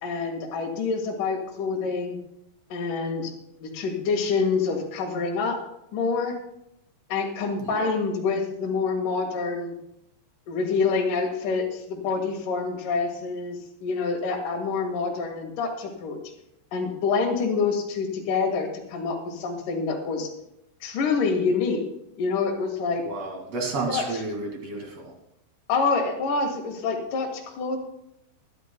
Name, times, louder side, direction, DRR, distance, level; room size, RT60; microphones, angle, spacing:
voice 1, 0.0-2.2 2.7-3.3 3.6-5.6 5.9-6.3 7.1-9.7 10.5-13.6 13.8-16.2 16.7-20.3 20.8-21.8 22.2-23.0 23.9-24.0 25.7-27.8, left 4 dB, 55° left, -1 dB, 3.0 m, -26 dB
voice 2, 7.6-8.0 23.0-25.1, right 3 dB, 45° right, 1 dB, 2.6 m, -31 dB
22.5 x 12.0 x 2.3 m, 0.79 s
omnidirectional pair, 5.5 m